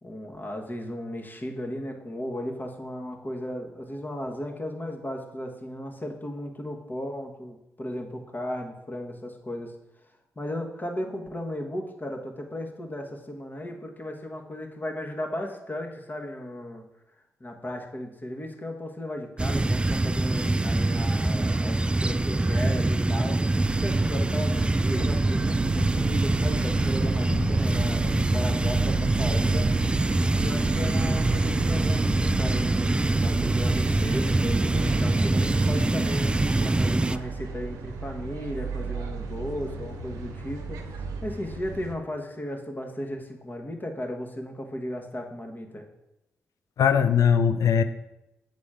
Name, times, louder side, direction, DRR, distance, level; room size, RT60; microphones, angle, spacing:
voice 1, 0.0-9.7 10.3-16.8 17.4-29.7 30.4-45.9, left 1 dB, 35° left, 2 dB, 1.4 m, -35 dB
sound 1, 19.4-37.2, right 2 dB, 20° right, 0.3 m, -24 dB
sound 2, 23.6-42.0, right 5 dB, 90° right, 0.6 m, -34 dB
voice 2, 46.8-47.8, left 7 dB, 75° left, 11 dB, 0.5 m, -20 dB
7.3 x 4.1 x 5.0 m, 0.92 s
supercardioid pair, 45°, 6 cm